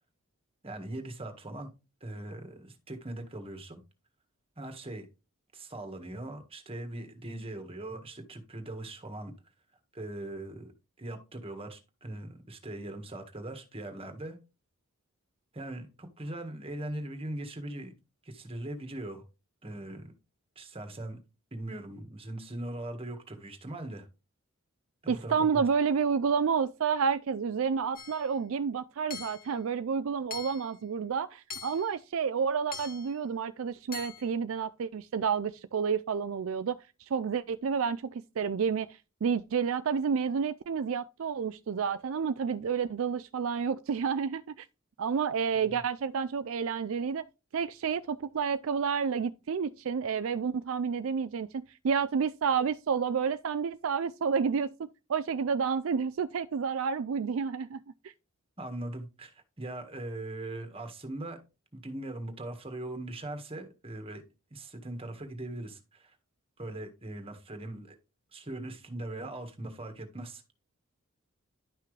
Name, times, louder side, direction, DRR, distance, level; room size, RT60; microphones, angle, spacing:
voice 1, 0.6-1.7 2.0-3.8 4.6-5.1 5.5-9.3 9.9-10.7 11.0-14.4 15.5-17.9 18.2-19.2 19.6-20.1 20.5-21.2 21.5-24.1 25.0-25.6 45.5-45.8 58.6-61.4 61.7-64.2 64.5-66.1 66.6-67.9 68.3-70.4, right 1 dB, 25° right, 1.6 m, -40 dB
voice 2, 25.1-36.8 37.1-38.9 39.2-44.7 45.0-47.3 47.5-57.8, right 6 dB, 70° right, 0.4 m, -30 dB
Hammer / Chink clink, 28.0-28.3 29.1-29.5 30.3-30.7 31.5-31.9 32.7-33.1 33.9-34.3, left 6 dB, 45° left, 1.2 m, -42 dB
11.0 x 5.8 x 3.2 m
head